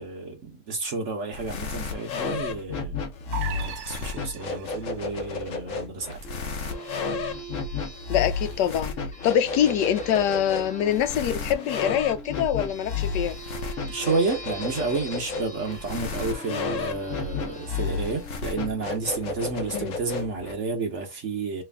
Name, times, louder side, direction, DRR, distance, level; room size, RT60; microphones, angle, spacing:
voice 1, 0.0-6.2 13.9-21.6, right 3 dB, 50° right, 1.1 m, -31 dB
sound 1, 1.3-20.5, left 5 dB, 55° left, 1.1 m, -32 dB
sound 2, 3.3-5.0, right 9 dB, 75° right, 0.6 m, -37 dB
sound 3, 6.2-19.4, right 2 dB, 10° left, 0.5 m, -42 dB
voice 2, 8.1-8.9 9.2-13.4 19.7-19.9, left 9 dB, 85° left, 1.3 m, -24 dB
3.3 x 3.2 x 3.4 m
omnidirectional pair, 1.8 m